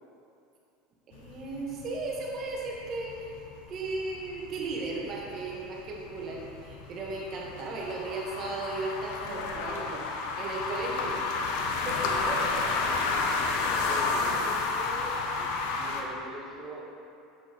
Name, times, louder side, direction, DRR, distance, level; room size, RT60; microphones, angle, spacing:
sound 1, 1.1-16.0, left 4 dB, 75° left, 0.6 m, -31 dB
voice 1, 1.1-3.4 3.7-10.0 10.4-11.5 11.8-13.1, right 3 dB, 45° right, -2 dB, 1.4 m, -36 dB
voice 2, 12.6-13.2 13.5-17.0, right 1 dB, 15° right, -4 dB, 1.4 m, -43 dB
7.6 x 5.5 x 3.0 m, 2.6 s
supercardioid pair, 105°, 0 cm